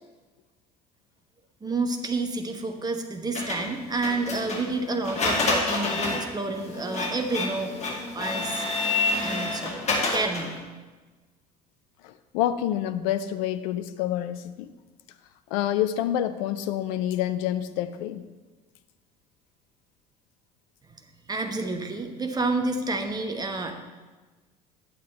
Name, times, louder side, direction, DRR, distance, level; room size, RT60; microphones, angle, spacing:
voice 1, 1.6-7.8 8.1-8.6 9.2-9.8 10.1-10.5 21.3-23.7, right 3 dB, 20° right, 5 dB, 1.1 m, -29 dB
Printer, 3.3-10.6, left 2 dB, 35° left, 2.1 m, -28 dB
voice 2, 12.0-14.7 15.5-18.2, left 11 dB, 55° left, 11 dB, 0.4 m, -27 dB
10.0 x 7.5 x 4.4 m, 1.3 s
figure-of-eight pair, 60°, 21 cm